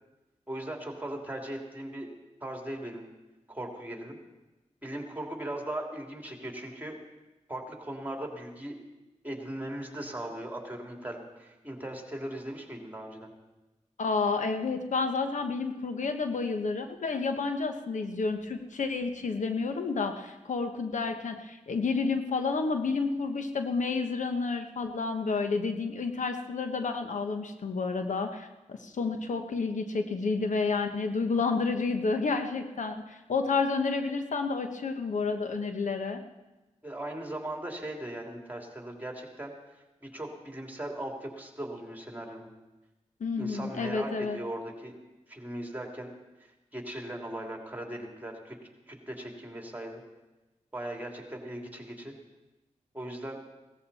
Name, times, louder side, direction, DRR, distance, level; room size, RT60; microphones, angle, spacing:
voice 1, 0.5-2.1 2.4-3.0 3.5-4.2 4.8-7.0 7.5-8.8 9.2-13.3 36.8-39.5 40.0-42.5 43.4-44.9 45.3-46.1 46.4-48.6 48.9-50.0 50.7-52.1 52.9-53.4, right 1 dB, 15° right, 2 dB, 3.0 m, -38 dB
voice 2, 14.0-36.2 43.2-44.4, left 4 dB, 80° left, 6 dB, 1.1 m, -30 dB
17.0 x 14.0 x 4.2 m, 1.1 s
cardioid pair, 60°, 13 cm